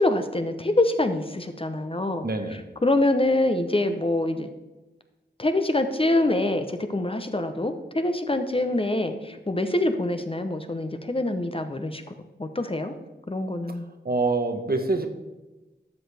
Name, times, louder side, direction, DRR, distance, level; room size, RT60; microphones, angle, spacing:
voice 1, 0.0-2.3 2.8-4.5 5.4-12.0 12.4-12.9 13.3-13.9, left 2 dB, 30° left, 8 dB, 0.8 m, -25 dB
voice 2, 2.2-2.6 13.7-13.8 14.0-15.1, right 3 dB, 55° right, 6 dB, 1.1 m, -25 dB
12.5 x 6.3 x 3.4 m, 1.1 s
wide cardioid pair, 50°, 19 cm